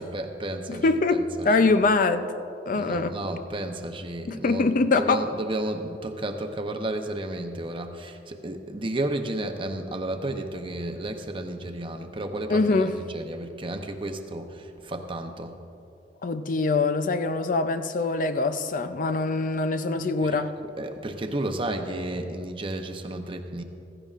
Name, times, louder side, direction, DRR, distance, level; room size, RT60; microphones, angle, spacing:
voice 1, 0.0-0.8 1.1-1.5 2.7-4.7 5.0-14.5 14.8-15.6 20.8-23.6, right 1 dB, 30° right, 6 dB, 0.7 m, -32 dB
voice 2, 0.7-2.3 2.7-3.2 4.3-5.3 12.5-13.0 16.2-20.6, left 3 dB, 50° left, 10 dB, 0.5 m, -23 dB
16.0 x 15.0 x 2.5 m, 2.7 s
head